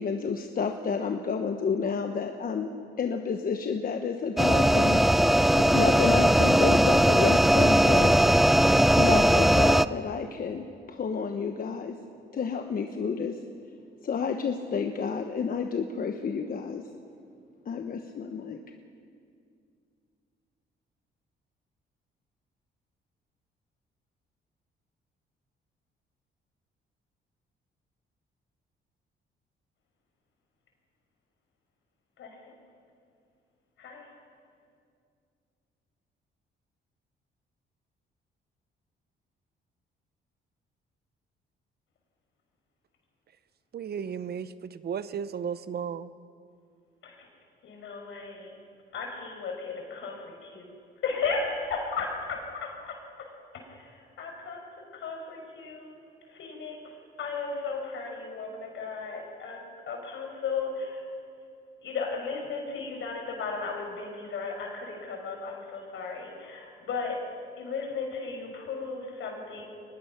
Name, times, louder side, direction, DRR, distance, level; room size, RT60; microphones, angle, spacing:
voice 1, 0.0-2.7 3.0-5.0 5.5-8.2 8.9-11.9 12.3-13.4 14.0-16.8 17.7-18.6, left 6 dB, 45° left, 1.1 m, -30 dB
sound 1, 4.4-9.9, equal, ahead, 0.4 m, -20 dB
voice 2, 32.2-32.6 33.8-34.1 47.0-47.3 47.6-48.5 48.9-50.7 51.0-52.9 53.5-54.6 54.9-56.0 56.3-56.9 57.2-61.1 61.8-67.2 67.6-69.6, left 4 dB, 75° left, 5.2 m, -35 dB
voice 3, 43.7-46.1, right 7 dB, 55° right, 0.8 m, -34 dB
23.0 x 20.0 x 6.0 m
cardioid pair, 90°, 20 cm